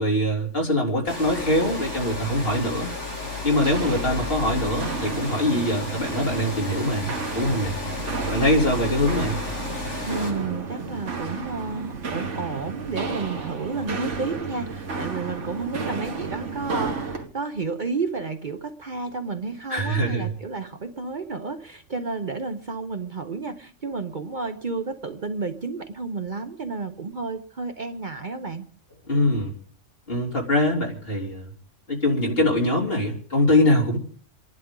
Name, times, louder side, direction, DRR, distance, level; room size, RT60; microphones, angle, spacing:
voice 1, 0.0-2.9 3.4-7.7 8.3-9.4 19.7-20.3 29.1-29.5 30.1-31.5 31.9-34.0, left 1 dB, 50° left, -1 dB, 3.7 m, -23 dB
Water, 1.1-10.3, left 3 dB, 70° left, 7.1 m, -33 dB
Walk footsteps, 3.5-17.3, right 4 dB, 75° right, 1.7 m, -32 dB
voice 2, 10.1-28.6, right 4 dB, 45° right, 7 dB, 0.9 m, -31 dB
28.5 x 11.0 x 3.8 m, 0.44 s
omnidirectional pair, 1.2 m